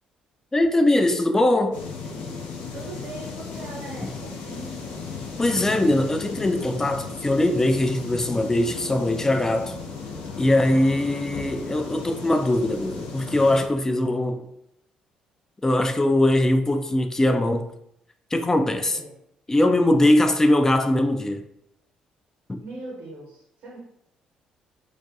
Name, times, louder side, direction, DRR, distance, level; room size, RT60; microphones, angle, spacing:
voice 1, 0.5-1.8 5.4-9.7 10.4-14.5 15.6-17.7 18.3-19.0 19.5-21.4 22.5-22.6, left 1 dB, 15° left, 0.3 m, -21 dB
sound 1, 1.7-13.7, left 4 dB, 75° left, 0.5 m, -36 dB
voice 2, 2.7-5.1 11.1-11.7 18.6-19.1 22.6-23.8, right 2 dB, 65° right, 0.9 m, -41 dB
2.3 x 2.2 x 2.7 m
hypercardioid pair, 55°, 3 cm